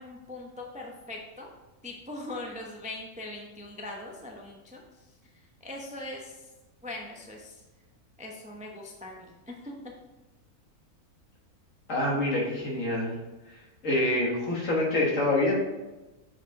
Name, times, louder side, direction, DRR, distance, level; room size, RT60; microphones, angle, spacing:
voice 1, 0.0-1.5 1.8-4.8 5.6-6.4 6.8-7.6 8.2-9.7, left 2 dB, 10° right, 0 dB, 0.4 m, -41 dB
voice 2, 11.9-13.2 13.8-15.5, left 1 dB, 55° left, -2 dB, 1.9 m, -26 dB
7.2 x 4.8 x 3.6 m, 1.1 s
omnidirectional pair, 1.6 m